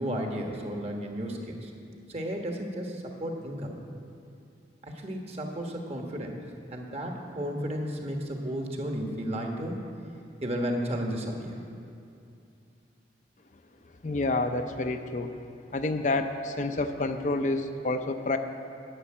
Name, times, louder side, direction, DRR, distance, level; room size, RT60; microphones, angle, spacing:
voice 1, 0.0-1.7 2.1-3.7 4.8-6.4 6.7-9.8 10.4-11.6, equal, 35° right, 2 dB, 1.3 m, -33 dB
voice 2, 14.0-15.3 15.7-18.4, left 2 dB, 40° left, 7 dB, 0.6 m, -28 dB
11.0 x 6.9 x 8.7 m, 2.6 s
head